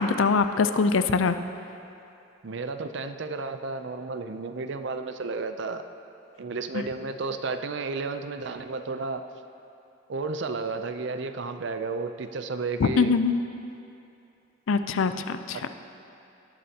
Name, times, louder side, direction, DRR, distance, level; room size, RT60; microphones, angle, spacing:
voice 1, 0.0-1.4 6.7-6.8 12.8-13.3 14.7-15.7, left 4 dB, 70° left, 10 dB, 0.4 m, -23 dB
voice 2, 2.4-5.8 6.4-9.2 10.1-13.1 15.5-15.7, right 3 dB, 60° right, 9 dB, 0.5 m, -32 dB
18.0 x 8.5 x 2.9 m, 2.7 s
head